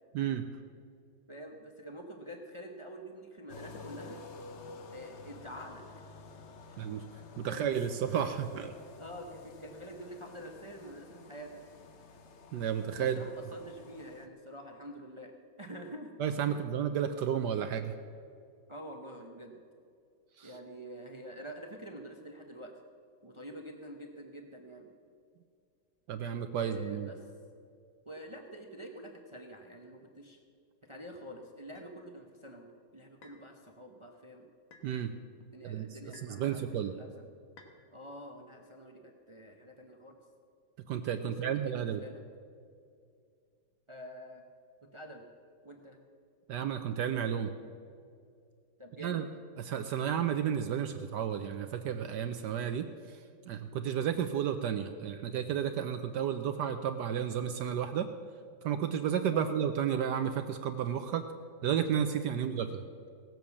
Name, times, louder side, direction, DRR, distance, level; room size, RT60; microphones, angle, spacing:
voice 1, 1.3-4.2 4.9-5.8 6.7-6.8 7.4-7.6 9.0-11.6 12.9-16.1 16.4-16.6 18.7-19.6 20.4-22.7 23.2-24.9 26.6-27.3 28.1-30.4 30.8-34.5 35.5-37.3 37.9-40.2 41.2-42.2 43.9-44.5 44.9-45.3 45.6-46.0 48.8-49.3 59.3-59.5 62.3-62.5, equal, 35° right, 3 dB, 0.4 m, -47 dB
sound 1, 3.5-14.3, left 3 dB, 50° left, 0.8 m, -51 dB
voice 2, 7.4-8.7 12.5-13.2 16.2-17.9 20.4-20.5 26.1-27.1 34.8-35.1 35.6-35.9 36.2-36.9 40.9-42.0 46.5-47.5 49.0-49.2 49.6-52.9 53.5-58.1 58.6-61.2 61.6-62.8, right 9 dB, 70° right, 8 dB, 1.1 m, -32 dB
sound 2, 31.8-31.9 33.2-33.5 34.7-34.9 36.1-36.4 37.6-37.8, left 4 dB, 80° left, 2.1 m, -56 dB
17.5 x 7.7 x 7.1 m, 2.3 s
omnidirectional pair, 2.1 m